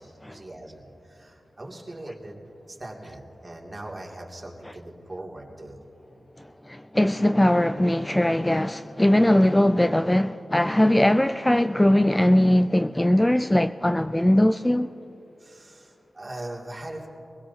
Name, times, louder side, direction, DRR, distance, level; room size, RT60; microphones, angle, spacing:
voice 1, 0.0-2.3 2.7-5.8 15.4-17.1, right 1 dB, 35° right, 2.5 m, -40 dB
voice 2, 6.4-14.9, left 1 dB, 15° left, 0.3 m, -20 dB
24.0 x 17.0 x 2.8 m
cardioid pair, 60°, 0 cm